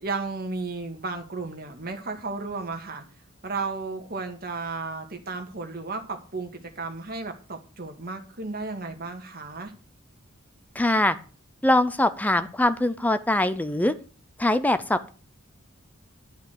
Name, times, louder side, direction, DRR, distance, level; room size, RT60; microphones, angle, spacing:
voice 1, 0.0-3.0 3.4-9.7, right 3 dB, 45° right, 2.0 m, -34 dB
voice 2, 10.8-11.1 11.6-13.9 14.4-15.1, left 1 dB, 10° left, 0.5 m, -22 dB
11.0 x 5.7 x 7.7 m
head